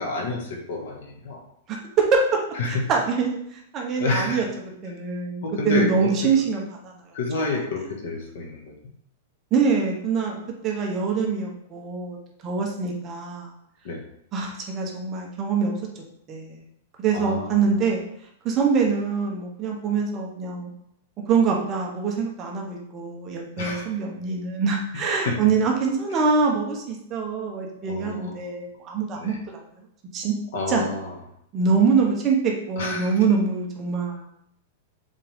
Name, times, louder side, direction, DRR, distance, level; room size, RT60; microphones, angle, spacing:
voice 1, 0.0-1.4 2.6-2.7 4.0-4.4 5.4-6.3 7.1-8.7 13.8-14.0 17.1-17.7 23.6-23.9 25.2-25.4 27.9-28.5 29.1-29.4 30.5-31.1 32.8-33.1, left 3 dB, 55° left, 1 dB, 1.6 m, -29 dB
voice 2, 1.7-2.4 2.7-4.5 4.8-7.0 7.3-7.6 9.5-12.2 12.4-13.5 14.3-15.7 16.3-16.6 17.0-18.0 18.4-20.7 21.3-29.3 30.1-30.3 30.7-30.8 31.5-34.3, right 5 dB, 20° right, 0 dB, 0.9 m, -24 dB
7.5 x 3.7 x 3.5 m, 0.73 s
supercardioid pair, 175°, 0 cm